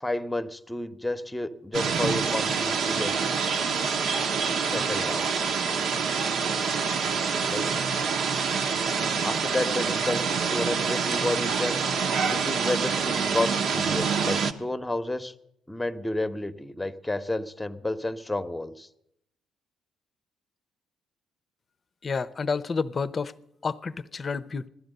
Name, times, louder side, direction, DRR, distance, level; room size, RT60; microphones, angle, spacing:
voice 1, 0.0-3.1 4.7-5.3 7.5-7.7 9.2-11.8 12.3-15.3 15.7-18.9, left 2 dB, 10° left, 1.0 m, -31 dB
sound 1, 1.7-14.5, right 5 dB, 65° right, 1.0 m, -26 dB
voice 2, 22.0-23.3 23.6-24.7, left 5 dB, 40° left, 0.7 m, -29 dB
16.0 x 12.5 x 6.6 m
hypercardioid pair, 55°, 0 cm